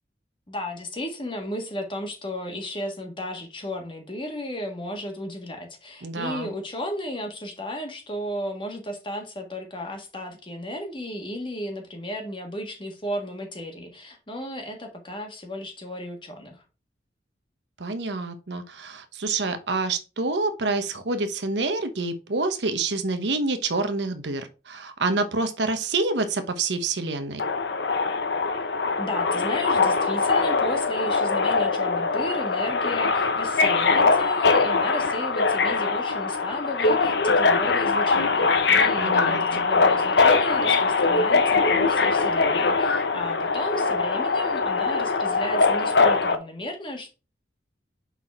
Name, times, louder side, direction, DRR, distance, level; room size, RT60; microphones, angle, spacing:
voice 1, 0.5-16.6 29.0-47.1, equal, 25° left, 1.5 m, -34 dB
voice 2, 6.0-6.5 17.8-27.4 39.0-39.6, right 3 dB, 75° right, 0.9 m, -27 dB
Subway metro underground, 27.4-46.4, left 4 dB, 70° left, 0.8 m, -22 dB
5.9 x 4.1 x 4.3 m
head